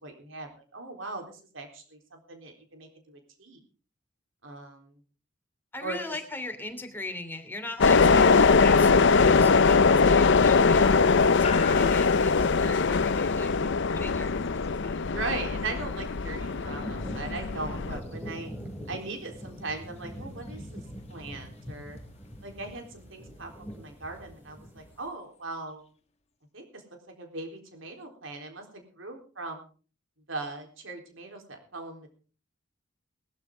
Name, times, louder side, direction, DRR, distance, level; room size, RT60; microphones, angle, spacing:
voice 1, 0.0-3.6 4.4-4.9 5.8-6.2 15.1-18.5 18.9-20.8 21.1-22.0 22.4-25.8 26.5-26.8 27.2-29.7 30.3-32.1, right 3 dB, 75° right, 3 dB, 3.9 m, -39 dB
voice 2, 5.7-14.3 14.8-15.0, left 2 dB, 10° left, 4 dB, 2.9 m, -39 dB
sound 1, 7.8-18.0, left 4 dB, 65° left, 0.6 m, -21 dB
sound 2, 11.4-25.7, left 6 dB, 35° left, 1.7 m, -47 dB
sound 3, 14.3-14.7 15.5-25.1, equal, 10° right, 3.1 m, -43 dB
20.5 x 13.0 x 3.8 m, 0.38 s
head